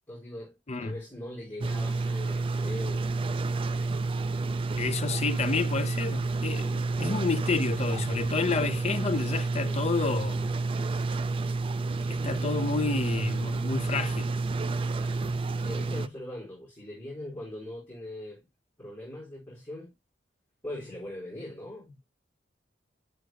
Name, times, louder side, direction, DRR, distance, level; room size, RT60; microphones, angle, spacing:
voice 1, 0.1-3.1 3.4-3.9 9.6-9.8 14.9-15.2 15.6-18.4 18.8-19.9 20.6-21.9, left 1 dB, 10° left, 4.2 m, -41 dB
sound 1, 1.6-16.1, right 3 dB, 30° right, 0.4 m, -30 dB
voice 2, 4.8-10.5 12.1-14.3, left 4 dB, 35° left, 0.7 m, -30 dB
9.3 x 8.0 x 2.2 m
head